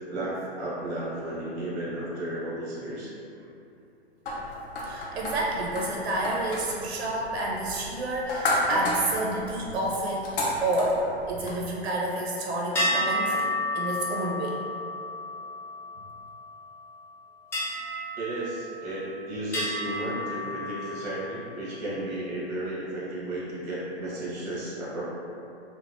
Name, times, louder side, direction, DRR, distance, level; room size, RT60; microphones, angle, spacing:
voice 1, 0.1-3.1 18.1-25.0, right 1 dB, 40° right, -7 dB, 1.0 m, -33 dB
sound 1, 4.3-11.6, left 1 dB, 55° left, 0.7 m, -32 dB
voice 2, 4.8-10.3 10.6-14.6, right 1 dB, 70° right, -3 dB, 0.5 m, -29 dB
sound 2, 12.7-16.4 17.5-19.1 19.5-21.2, left 1 dB, 5° left, 0.5 m, -31 dB
3.1 x 2.0 x 2.4 m, 2.7 s
figure-of-eight pair, 115°, 32 cm